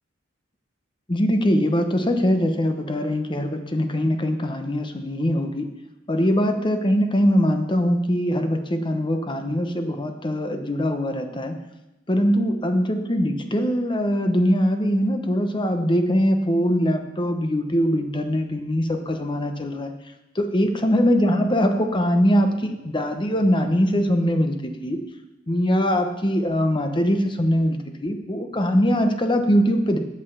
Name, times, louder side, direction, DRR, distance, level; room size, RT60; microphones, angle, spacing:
voice 1, 1.1-5.7 6.1-11.6 12.1-19.9 20.3-25.0 25.5-30.0, equal, 25° left, 6 dB, 1.0 m, -22 dB
8.7 x 8.0 x 6.9 m, 0.96 s
head